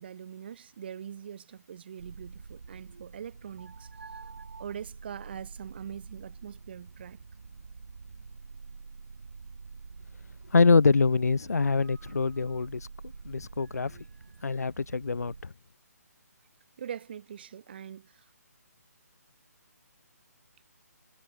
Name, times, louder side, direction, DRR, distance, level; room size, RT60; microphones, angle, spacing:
voice 1, 0.0-3.9 4.6-7.2 16.8-18.2, right 8 dB, 35° right, 1.5 m, -42 dB
sound 1, 2.0-15.4, right 4 dB, 55° right, 1.4 m, -47 dB
voice 2, 10.5-12.9 13.2-14.0 14.4-15.5, left 4 dB, 70° left, 0.4 m, -24 dB
figure-of-eight pair, 140°, 9 cm